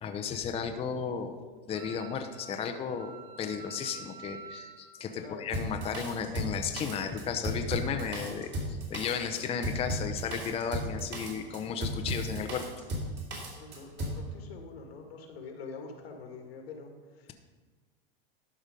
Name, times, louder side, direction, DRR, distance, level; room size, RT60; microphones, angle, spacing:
voice 1, 0.0-12.6, left 6 dB, 20° left, 6 dB, 0.6 m, -34 dB
Wind instrument woodwind instrument, 1.7-5.0, right 6 dB, 65° right, 1.3 m, -48 dB
Drum kit, 5.5-14.2, equal, 35° right, 2.7 m, -35 dB
voice 2, 13.5-17.3, left 4 dB, 90° left, 3 dB, 1.8 m, -45 dB
12.5 x 5.0 x 5.2 m, 1.4 s
supercardioid pair, 125°, 30 cm